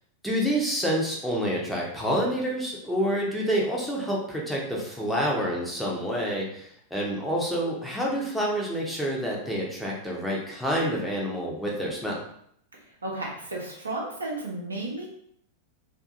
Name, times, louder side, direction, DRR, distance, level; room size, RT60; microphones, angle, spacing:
voice 1, 0.2-12.2, equal, ahead, -3 dB, 0.7 m, -28 dB
voice 2, 12.7-15.1, right 2 dB, 75° right, -2 dB, 0.6 m, -34 dB
2.6 x 2.5 x 2.5 m, 0.68 s
figure-of-eight pair, 90°, 0 cm